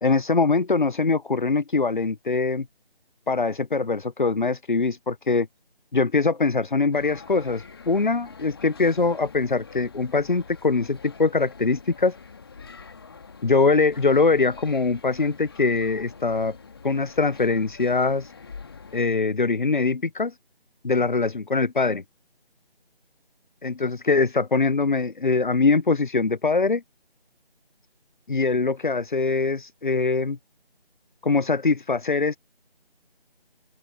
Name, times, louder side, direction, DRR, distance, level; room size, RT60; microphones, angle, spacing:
voice 1, 0.0-2.7 3.3-5.5 5.9-12.1 13.4-16.6 16.8-18.3 18.9-20.3 20.8-22.0 23.6-26.8 28.3-30.4 31.2-32.4, left 4 dB, 55° left, 0.7 m, -22 dB
sound 1, 6.9-19.0, left 5 dB, 25° left, 2.2 m, -45 dB
open air
figure-of-eight pair, 165°, 30 cm